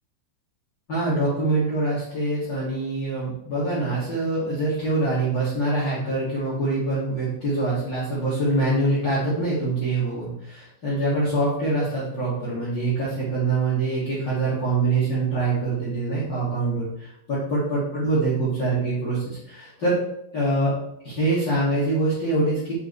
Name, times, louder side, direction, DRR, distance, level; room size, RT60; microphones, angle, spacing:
voice 1, 0.9-20.0 20.3-20.7 21.0-22.7, right 2 dB, 30° left, -9 dB, 3.1 m, -24 dB
11.5 x 6.0 x 3.6 m, 0.77 s
omnidirectional pair, 5.3 m